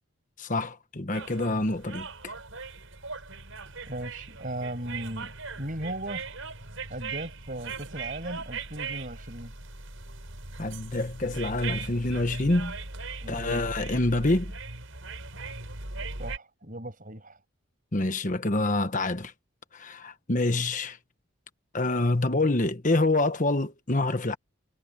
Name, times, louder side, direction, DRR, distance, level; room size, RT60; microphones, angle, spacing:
voice 1, 0.4-2.3 10.6-12.7 13.3-14.5 17.9-19.3 19.7-21.0 21.7-24.4, left 2 dB, 35° left, 1.3 m, -26 dB
sound 1, 1.1-16.4, right 4 dB, 70° right, 5.8 m, -39 dB
voice 2, 3.9-6.3 6.9-9.5 13.2-13.6 16.2-17.4, right 1 dB, 40° right, 7.8 m, -37 dB
head